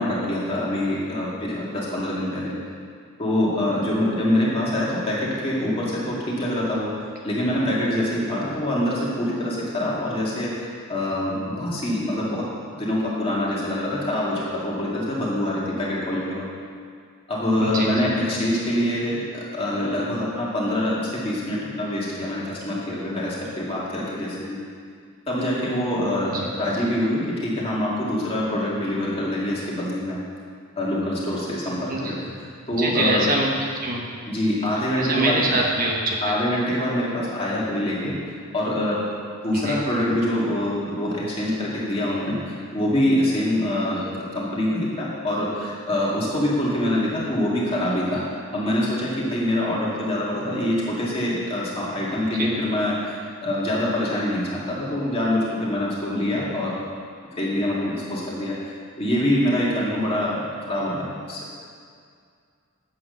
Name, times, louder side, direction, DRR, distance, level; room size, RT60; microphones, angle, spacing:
voice 1, 0.0-2.5 3.2-6.9 7.2-12.4 12.7-16.5 17.3-24.6 25.3-30.2 30.8-32.1 32.7-33.2 34.3-35.4 36.2-39.1 39.4-56.8 57.4-58.5 59.0-61.0 61.3-61.4, left 1 dB, 25° left, -6 dB, 2.1 m, -25 dB
voice 2, 17.6-18.1 26.2-26.5 31.9-32.1 32.7-34.0 35.0-36.3 39.5-39.8 52.3-52.5, right 2 dB, 40° right, -1 dB, 1.0 m, -25 dB
8.6 x 7.7 x 6.5 m, 2.2 s
head